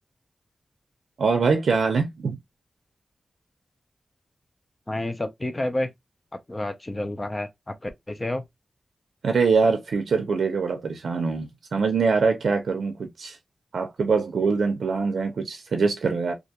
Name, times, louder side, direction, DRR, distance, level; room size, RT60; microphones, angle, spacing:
voice 1, 1.2-2.4 9.2-13.4 13.7-16.3, right 4 dB, 90° right, 0.5 m, -23 dB
voice 2, 4.9-5.9 6.5-8.4, left 1 dB, 25° left, 0.4 m, -29 dB
2.4 x 2.2 x 2.7 m
wide cardioid pair, 115°, 0 cm